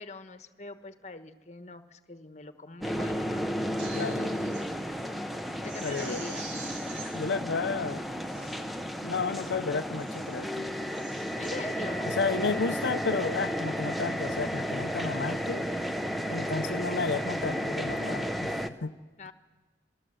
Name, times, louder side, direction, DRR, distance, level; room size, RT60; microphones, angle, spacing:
voice 1, 0.0-3.5 5.5-6.5 11.4-12.2 19.2-19.3, left 2 dB, 40° left, 10 dB, 1.2 m, -43 dB
sound 1, 2.8-18.7, equal, ahead, 0.7 m, -33 dB
Crying sobbing, 3.6-4.7 5.1-5.2 5.6-7.1 7.8-7.9 8.2-8.6 9.1-9.5 10.0-10.4 10.8-11.5 12.0-12.3, right 4 dB, 75° right, 3.8 m, -45 dB
voice 2, 3.9-4.4 5.8-6.2 7.1-8.1 9.0-10.7 12.0-15.7 16.3-18.9, left 4 dB, 75° left, 7 dB, 0.6 m, -32 dB
27.0 x 19.0 x 7.9 m, 1.4 s
head